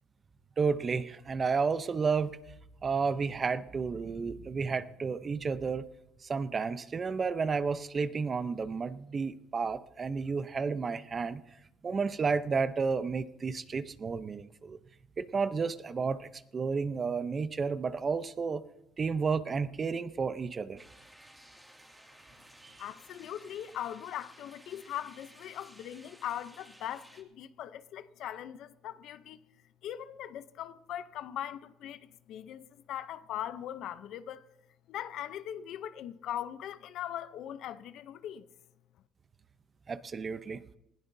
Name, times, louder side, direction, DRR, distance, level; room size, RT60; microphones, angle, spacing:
voice 1, 0.6-2.4 2.8-5.8 6.2-11.4 11.8-14.8 15.2-18.6 19.0-20.8 22.6-22.8 39.9-40.6, right 5 dB, 30° right, 0.7 m, -31 dB
sound 1, 20.8-27.2, right 1 dB, 5° right, 2.3 m, -56 dB
voice 2, 22.8-29.4 29.8-34.4 34.9-38.5, left 11 dB, 65° left, 0.7 m, -40 dB
20.0 x 16.5 x 2.7 m
cardioid pair, 110°, 0 cm